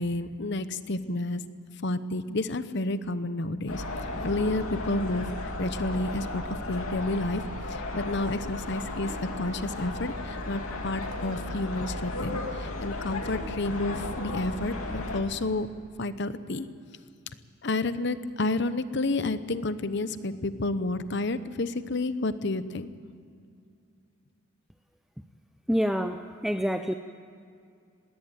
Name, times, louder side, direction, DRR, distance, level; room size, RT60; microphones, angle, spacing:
voice 1, 0.0-1.4 1.8-3.8 4.2-5.3 5.6-7.4 7.7-15.7 16.0-16.7 17.6-22.9, left 2 dB, 50° left, 13 dB, 0.9 m, -30 dB
sound 1, 3.7-15.2, left 2 dB, 80° left, 2.4 m, -35 dB
voice 2, 25.7-26.9, equal, ahead, 7 dB, 0.5 m, -27 dB
20.0 x 18.0 x 9.0 m, 2.3 s
head